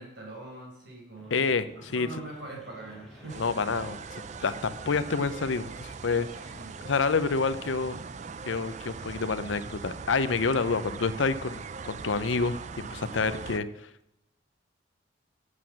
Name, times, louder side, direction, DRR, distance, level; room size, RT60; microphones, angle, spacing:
voice 1, 0.0-3.9 4.6-4.7 6.5-6.8, right 2 dB, 60° right, -2 dB, 4.9 m, -43 dB
sound 1, 1.1-10.3, left 1 dB, ahead, 2.9 m, -55 dB
voice 2, 1.3-2.1 3.4-4.0 4.4-6.3 6.8-8.0 8.5-13.9, left 4 dB, 75° left, 13 dB, 0.7 m, -28 dB
sound 2, 3.3-13.6, right 5 dB, 35° right, 0.4 m, -41 dB
8.3 x 7.7 x 8.6 m, 0.82 s
head